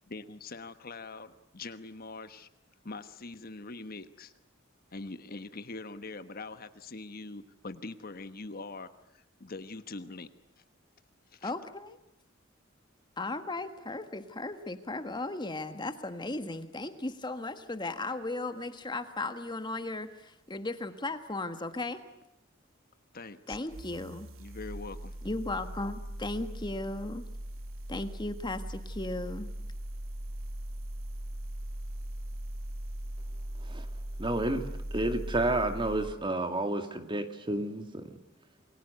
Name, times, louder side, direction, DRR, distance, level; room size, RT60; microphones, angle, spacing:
voice 1, 0.0-2.5 2.8-4.3 4.9-10.3 11.3-11.5 23.1-23.6 24.4-25.1, left 3 dB, 50° left, 11 dB, 1.3 m, -43 dB
voice 2, 11.4-12.0 13.2-22.0 23.5-24.3 25.2-27.2 27.9-29.5, left 2 dB, 25° left, 9 dB, 1.6 m, -36 dB
sound 1, 23.5-36.2, right 1 dB, 80° right, 1.3 m, -39 dB
voice 3, 34.2-38.2, right 2 dB, 25° right, 7 dB, 2.3 m, -31 dB
28.5 x 22.5 x 8.1 m, 0.82 s
head